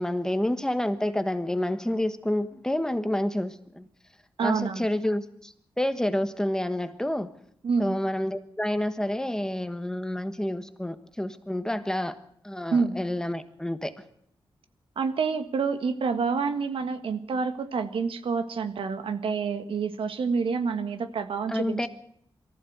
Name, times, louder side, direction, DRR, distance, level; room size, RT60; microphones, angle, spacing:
voice 1, 0.0-3.9 4.4-7.3 7.8-12.2 12.4-13.9 21.5-21.9, left 1 dB, 5° left, 1.3 m, -29 dB
voice 2, 4.4-4.9 7.6-8.0 12.7-13.0 15.0-21.9, right 5 dB, 90° right, 1.6 m, -28 dB
23.0 x 14.5 x 8.0 m
wide cardioid pair, 135°, 9 cm